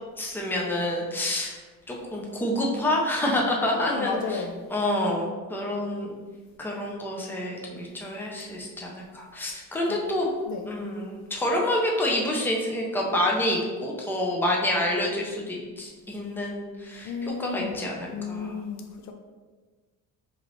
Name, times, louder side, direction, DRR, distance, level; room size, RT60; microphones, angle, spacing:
voice 1, 0.2-1.6 1.9-4.4 4.7-6.1 6.6-10.3 10.7-18.5, left 1 dB, 5° left, -2 dB, 0.6 m, -28 dB
voice 2, 3.7-4.6 9.9-10.0 10.5-10.7 17.0-17.8 18.1-19.1, left 5 dB, 55° left, 4 dB, 0.5 m, -33 dB
5.0 x 3.1 x 3.1 m, 1.4 s
cardioid pair, 165°, 34 cm